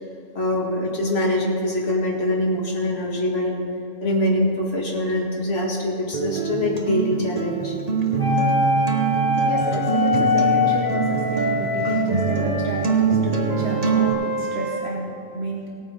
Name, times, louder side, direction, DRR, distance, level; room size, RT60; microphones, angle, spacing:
voice 1, 0.3-3.6 4.0-7.8, left 1 dB, 60° left, -3 dB, 2.2 m, -23 dB
Acoustic guitar, 6.1-14.1, right 6 dB, 35° right, 0.9 m, -24 dB
sound 1, 8.2-12.9 13.5-14.8, left 3 dB, 30° left, 2.6 m, -24 dB
voice 2, 8.2-8.6 9.4-15.7, right 1 dB, 55° right, -2 dB, 1.5 m, -30 dB
17.5 x 8.9 x 4.0 m, 2.6 s
omnidirectional pair, 1.3 m